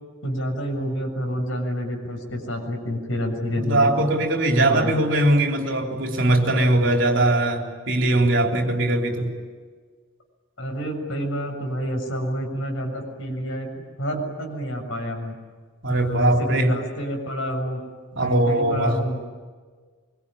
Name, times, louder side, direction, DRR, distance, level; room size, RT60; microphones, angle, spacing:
voice 1, 0.2-3.9 4.5-4.9 10.6-13.7 14.0-15.3 15.9-17.8 18.2-19.2, equal, 80° left, 3 dB, 7.0 m, -28 dB
voice 2, 3.5-9.3 15.8-16.8 18.1-19.0, right 1 dB, 65° right, 2 dB, 3.7 m, -21 dB
24.5 x 23.5 x 10.0 m, 1.5 s
head